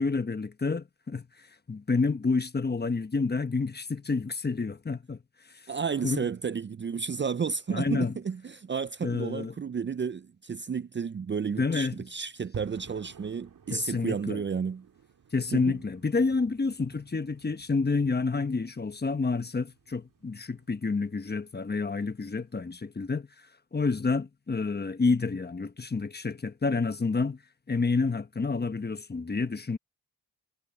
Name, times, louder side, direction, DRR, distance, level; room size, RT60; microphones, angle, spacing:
voice 1, 0.0-5.2 6.0-6.2 7.7-8.1 9.0-9.5 11.6-12.0 13.7-14.4 15.3-23.3 23.7-27.4 27.7-29.8, left 4 dB, 30° left, 1.2 m, -29 dB
voice 2, 5.7-14.9 15.5-15.8, right 6 dB, 35° right, 0.5 m, -32 dB
sound 1, 12.5-22.8, right 7 dB, 70° right, 2.5 m, -52 dB
cardioid pair, 70°, 33 cm